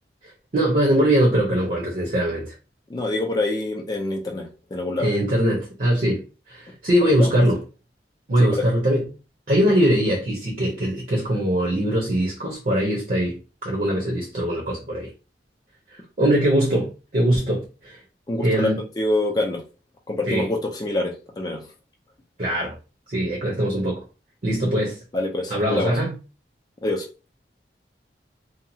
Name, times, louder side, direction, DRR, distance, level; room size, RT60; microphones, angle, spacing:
voice 1, 0.5-2.5 5.0-6.2 6.5-7.6 8.3-9.0 9.5-15.1 16.2-18.0 18.4-18.8 20.3-20.5 22.4-22.7 23.1-24.0 24.4-25.0 25.5-26.1, right 1 dB, 50° right, 0.8 m, -21 dB
voice 2, 2.9-5.1 7.0-7.3 8.4-8.6 18.3-18.7 19.0-19.6 20.1-21.6 25.1-25.9 26.8-27.0, left 2 dB, 20° left, 0.4 m, -26 dB
2.8 x 2.3 x 2.7 m
head